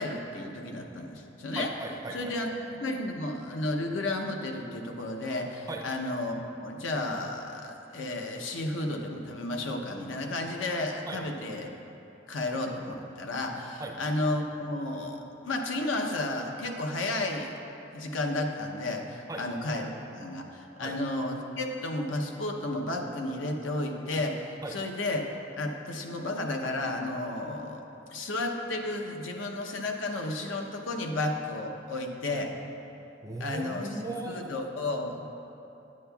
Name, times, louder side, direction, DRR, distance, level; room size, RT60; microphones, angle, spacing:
voice 1, 0.0-1.7 2.1-11.7 12.3-17.5 17.9-25.2 25.6-27.8 28.1-32.5 33.4-33.9 34.3-35.3, left 2 dB, 85° left, 2 dB, 0.7 m, -32 dB
voice 2, 1.5-2.3 5.7-5.8 11.1-11.2 13.8-14.0 19.3-19.4 20.8-21.0 24.6-24.8 33.2-34.4, right 2 dB, 15° right, 2 dB, 0.4 m, -37 dB
9.8 x 8.4 x 2.3 m, 3.0 s
head